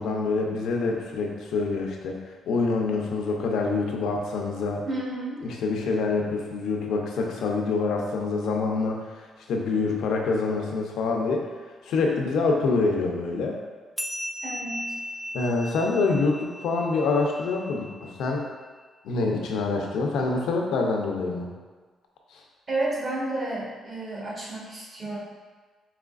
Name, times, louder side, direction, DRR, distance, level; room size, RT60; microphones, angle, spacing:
voice 1, 0.0-2.2 2.5-4.8 5.4-9.1 9.5-11.5 11.9-13.6 15.3-18.4 19.0-21.5, left 3 dB, 80° left, 0 dB, 0.6 m, -26 dB
voice 2, 4.9-5.4 14.4-14.9 22.7-25.2, right 2 dB, 40° right, -6 dB, 1.4 m, -31 dB
sound 1, 14.0-18.8, equal, 5° left, 0.3 m, -37 dB
4.9 x 3.1 x 2.5 m, 1.4 s
cardioid pair, 120°, 0 cm